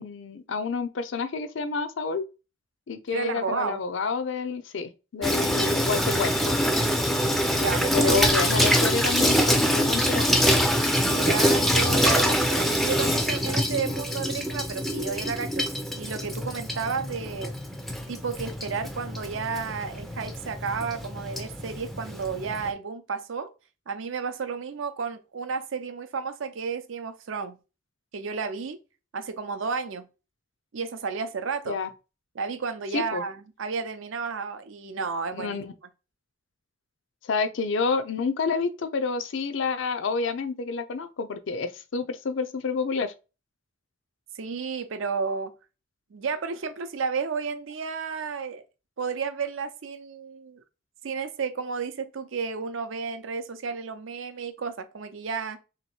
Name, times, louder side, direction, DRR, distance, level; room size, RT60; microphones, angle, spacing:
voice 1, 0.0-2.2 2.9-6.5 7.9-10.4 31.7-31.9 32.9-33.2 35.3-35.7 37.2-43.1, left 5 dB, 70° left, 0.5 m, -29 dB
voice 2, 3.1-3.8 7.5-8.1 11.1-15.7 16.0-17.6 18.1-23.5 23.9-27.6 28.1-28.8 29.1-30.1 30.7-31.8 32.3-35.6 44.3-45.5 46.1-48.6 49.0-50.6 51.0-55.6, right 5 dB, 75° right, 0.5 m, -32 dB
Water tap faucet / Sink (filling or washing), 5.2-22.7, equal, ahead, 0.4 m, -25 dB
3.1 x 2.9 x 4.3 m
head